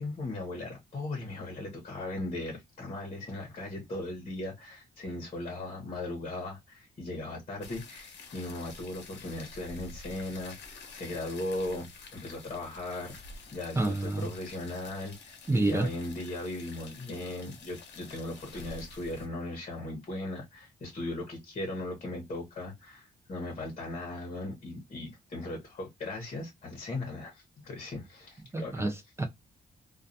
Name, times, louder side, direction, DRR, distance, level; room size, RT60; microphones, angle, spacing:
voice 1, 0.0-13.2 13.5-28.9, left 2 dB, 35° left, 1.0 m, -38 dB
sound 1, 7.6-19.3, left 4 dB, 85° left, 0.8 m, -49 dB
voice 2, 13.8-14.3 15.5-15.9 28.5-29.2, right 2 dB, 15° right, 0.5 m, -28 dB
2.3 x 2.3 x 2.6 m
wide cardioid pair, 145°, 18 cm